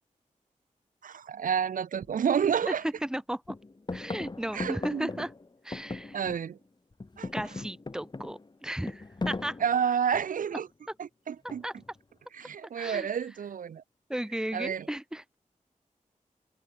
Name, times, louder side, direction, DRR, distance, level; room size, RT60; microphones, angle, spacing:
voice 1, 1.0-2.8 4.5-5.1 6.1-6.6 7.2-7.3 9.6-10.7 11.0-11.6 12.3-13.8 14.5-14.9, right 8 dB, 80° right, 0.7 m, -29 dB
sound 1, 2.0-2.2 2.6-3.2 3.5-6.6 6.9-10.5 11.5-12.0, left 3 dB, 35° left, 2.1 m, -39 dB
voice 2, 2.7-3.5 3.9-5.3 5.6-6.2 7.3-9.6 11.6-11.7 12.8-13.2 14.1-15.4, right 1 dB, 5° right, 1.2 m, -35 dB
wide cardioid pair, 70°, 14 cm